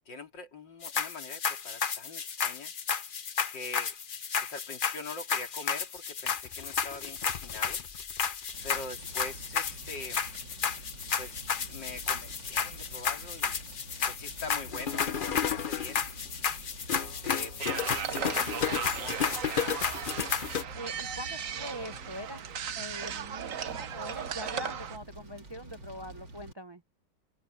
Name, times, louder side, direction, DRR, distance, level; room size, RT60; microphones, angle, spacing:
voice 1, 0.1-2.7 3.5-3.9 4.4-7.8 8.6-10.2 11.2-13.6 14.1-16.1 16.9-20.0, left 3 dB, 80° left, 3.9 m, -44 dB
sound 1, 0.8-20.6, left 6 dB, 45° left, 0.7 m, -32 dB
Fire, 8.5-26.5, right 2 dB, 85° right, 4.2 m, -48 dB
sound 2, 17.6-25.0, right 8 dB, 55° right, 1.2 m, -37 dB
voice 2, 20.7-22.4 22.8-26.8, equal, 35° right, 0.4 m, -43 dB
omnidirectional pair, 1.9 m